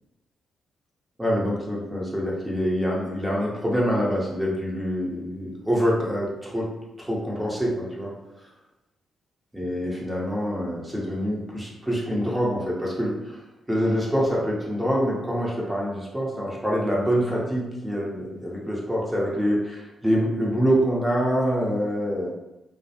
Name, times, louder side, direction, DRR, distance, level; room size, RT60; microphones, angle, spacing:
voice 1, 1.2-6.7 7.0-8.1 9.5-13.4 13.7-22.3, equal, 15° right, -4 dB, 0.9 m, -25 dB
2.3 x 2.1 x 2.8 m, 0.94 s
supercardioid pair, 50°, 0 cm